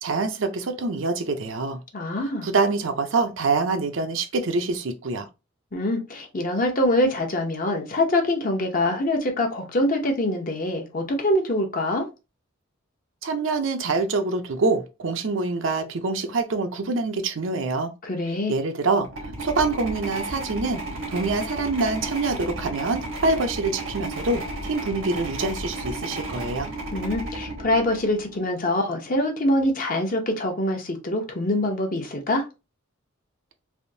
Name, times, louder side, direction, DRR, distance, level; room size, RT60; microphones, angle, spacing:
voice 1, 0.0-1.8 2.4-5.3 13.2-17.9 18.5-20.8 21.1-26.7, right 3 dB, 70° right, 0.6 m, -25 dB
voice 2, 1.9-2.5 5.7-12.1 18.0-18.5 26.9-32.4, left 1 dB, 45° left, 0.8 m, -24 dB
sound 1, 19.0-28.4, right 1 dB, 90° right, 1.2 m, -33 dB
3.5 x 2.6 x 2.6 m
head